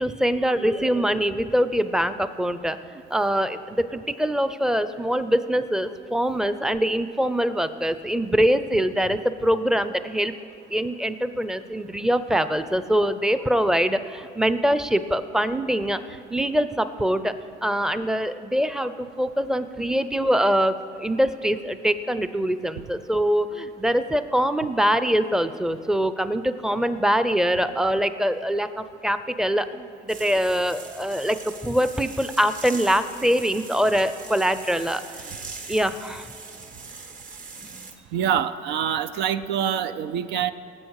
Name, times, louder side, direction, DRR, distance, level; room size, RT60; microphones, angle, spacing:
voice 1, 0.0-10.3 10.7-17.3 17.6-35.4 35.7-36.3 37.7-37.9, equal, 5° right, 12 dB, 0.5 m, -24 dB
sound 1, 30.1-37.9, right 4 dB, 45° right, 1.4 m, -41 dB
voice 2, 38.1-40.5, right 9 dB, 70° right, 12 dB, 0.5 m, -25 dB
19.0 x 7.6 x 4.8 m, 2.3 s
cardioid pair, 95°, 18 cm